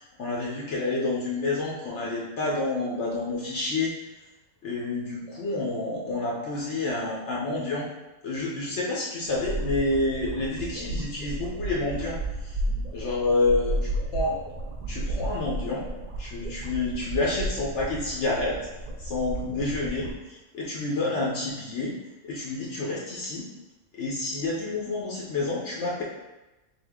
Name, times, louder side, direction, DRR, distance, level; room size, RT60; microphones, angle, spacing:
voice 1, 0.0-3.9 4.6-7.9 8.2-12.6 12.9-13.8 14.1-14.4 14.9-15.9 16.2-18.6 19.0-21.9 22.2-23.5 24.0-26.0, left 2 dB, 65° left, -4 dB, 0.9 m, -29 dB
sound 1, 9.3-20.1, right 2 dB, 65° right, 0.4 m, -33 dB
3.5 x 2.8 x 3.5 m, 1.0 s
omnidirectional pair, 1.4 m